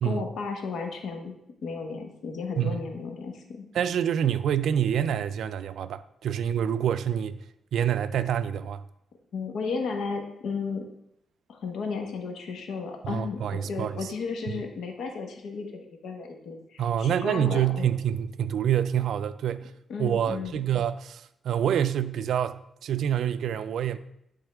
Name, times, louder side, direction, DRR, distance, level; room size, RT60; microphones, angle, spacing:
voice 1, 0.0-1.3 1.6-3.7 9.3-10.8 11.5-17.9 19.9-20.6, left 4 dB, 75° left, 1.1 m, -34 dB
voice 2, 3.7-7.4 7.7-8.8 13.0-14.1 16.8-19.7 20.0-24.0, right 9 dB, 75° right, 0.3 m, -27 dB
10.0 x 3.7 x 3.4 m
cardioid pair, 110°, 0 cm